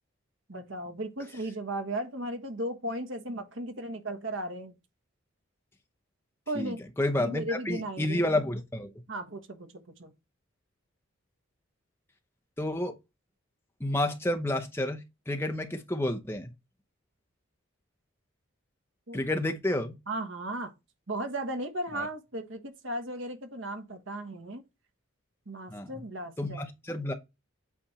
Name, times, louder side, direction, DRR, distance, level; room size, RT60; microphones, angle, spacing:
voice 1, 0.5-4.7 6.5-6.8 7.2-8.2 9.1-10.1 19.1-19.2 20.1-20.7 21.1-24.6 25.5-26.7, right 1 dB, 65° right, 1.3 m, -36 dB
voice 2, 6.5-8.9 12.6-12.9 13.8-16.5 19.1-19.9 21.9-22.1 25.7-25.9 26.4-27.1, left 1 dB, 10° left, 0.8 m, -30 dB
8.4 x 3.4 x 4.2 m
head